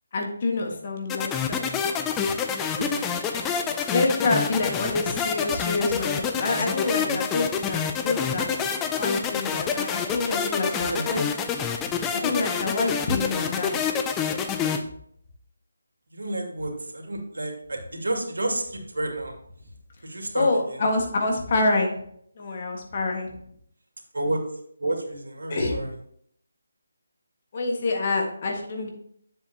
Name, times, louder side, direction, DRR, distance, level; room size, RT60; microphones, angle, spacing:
voice 1, 0.1-1.6 3.9-8.5 9.0-11.2 12.1-13.7 20.3-22.0 22.4-23.3 25.5-25.8 27.5-28.9, left 2 dB, 40° left, 2 dB, 1.6 m, -27 dB
sound 1, 1.1-14.8, left 7 dB, 10° left, 0.5 m, -27 dB
voice 2, 2.8-3.3 3.6-3.7 6.5-7.2 10.7-11.2 16.1-19.3 20.0-20.9 24.1-24.4 24.8-25.9, right 1 dB, 75° right, 1 dB, 2.3 m, -31 dB
8.9 x 7.4 x 2.9 m, 0.67 s
figure-of-eight pair, 160°, 0 cm